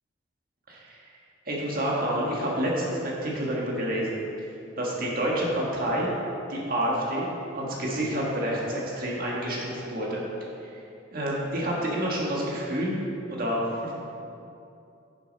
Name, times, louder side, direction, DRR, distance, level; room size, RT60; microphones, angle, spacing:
voice 1, 0.7-1.0 1.5-4.2 4.8-6.2 6.5-10.2 10.7-10.8 11.1-13.0 13.3-13.9, right 1 dB, 45° right, -4 dB, 1.7 m, -28 dB
7.0 x 7.0 x 5.4 m, 2.7 s
head